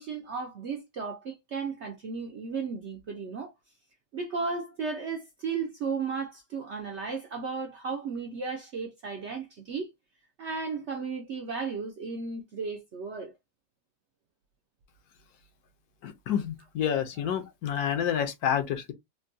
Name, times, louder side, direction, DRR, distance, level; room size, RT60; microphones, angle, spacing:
voice 1, 0.0-3.5 4.1-9.9 10.4-13.4, right 5 dB, 65° right, 0.7 m, -34 dB
voice 2, 16.0-18.9, left 9 dB, 70° left, 1.2 m, -29 dB
3.5 x 2.2 x 2.6 m
omnidirectional pair, 1.8 m